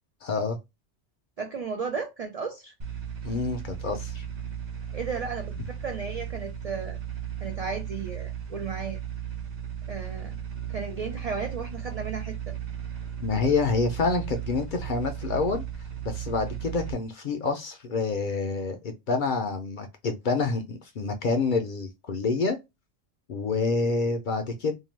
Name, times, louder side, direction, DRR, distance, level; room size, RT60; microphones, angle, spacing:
voice 1, 0.2-0.6 3.2-4.3 13.2-15.6 16.0-22.6 23.3-24.7, left 4 dB, 60° left, 0.5 m, -27 dB
voice 2, 1.4-2.7 4.9-5.5 5.8-7.0 7.4-9.0 9.9-10.4 10.7-12.5, right 5 dB, 70° right, 0.3 m, -34 dB
sound 1, 2.8-16.9, right 9 dB, 45° right, 0.8 m, -36 dB
2.7 x 2.2 x 3.1 m
omnidirectional pair, 1.2 m